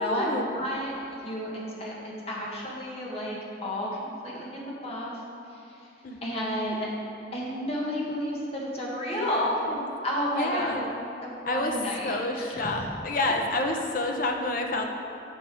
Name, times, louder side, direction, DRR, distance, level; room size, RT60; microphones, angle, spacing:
voice 1, 0.0-0.5 6.0-6.2 9.1-9.9 10.3-10.9 11.5-11.7 12.0-14.9, left 2 dB, 50° left, 3 dB, 0.8 m, -28 dB
voice 2, 0.5-3.9 4.2-5.1 6.2-6.9 7.3-9.6 10.0-10.7 11.2-12.8, equal, 35° left, -4 dB, 1.5 m, -32 dB
8.6 x 5.4 x 4.9 m, 2.7 s
head